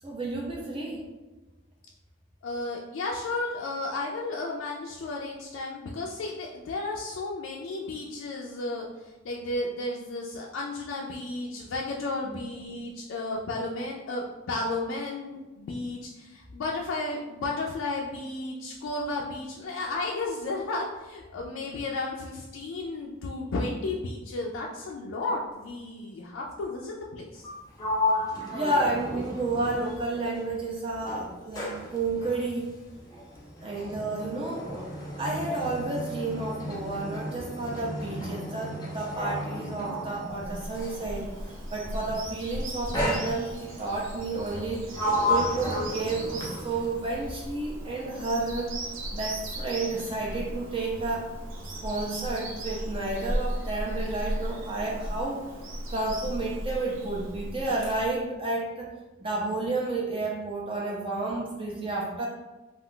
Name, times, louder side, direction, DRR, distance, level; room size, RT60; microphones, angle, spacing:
voice 1, 0.0-1.0 12.2-12.4 28.5-32.7 33.6-34.9 35.2-45.0 45.3-48.7 49.1-51.3 51.6-55.4 55.9-58.9 59.2-62.3, right 2 dB, 25° right, -3 dB, 0.4 m, -31 dB
voice 2, 2.4-27.5, left 2 dB, 75° left, -1 dB, 0.3 m, -33 dB
Sliding door, 27.4-30.7 31.0-41.1 42.0-42.3 42.9-43.9 44.4-47.0, left 1 dB, 20° left, 0.6 m, -33 dB
Bird vocalization bird call bird song, 40.2-58.2, right 1 dB, 80° right, 0.6 m, -37 dB
2.4 x 2.3 x 3.6 m, 1.1 s
head